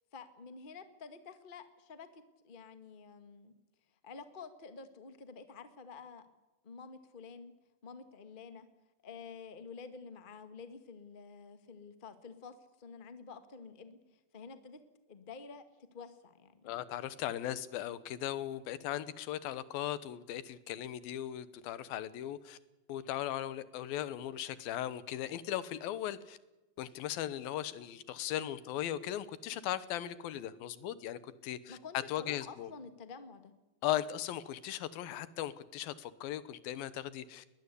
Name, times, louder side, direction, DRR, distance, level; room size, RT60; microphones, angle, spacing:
voice 1, 0.1-3.5 4.0-6.3 6.6-7.5 7.8-8.7 9.0-14.8 15.1-16.7 31.7-33.5, left 5 dB, 30° left, 0.8 m, -50 dB
voice 2, 16.6-22.6 22.9-26.4 26.8-31.8 32.1-32.7 33.8-37.4, left 12 dB, 90° left, 2.9 m, -38 dB
21.5 x 20.0 x 8.4 m
omnidirectional pair, 4.1 m